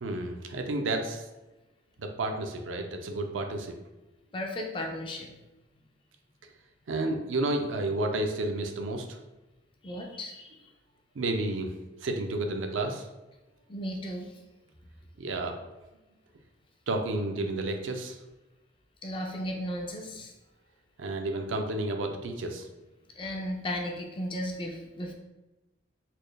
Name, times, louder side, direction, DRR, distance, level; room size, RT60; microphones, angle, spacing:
voice 1, 0.0-1.2 2.0-3.8 6.9-9.2 11.2-11.7 12.0-13.1 15.2-15.6 16.9-18.2 21.0-22.7, right 2 dB, 85° right, 4 dB, 0.5 m, -31 dB
voice 2, 4.3-5.3 9.8-10.5 13.7-14.3 19.0-20.3 23.2-25.1, equal, 25° left, 2 dB, 0.4 m, -35 dB
4.2 x 3.2 x 2.3 m, 1.0 s
head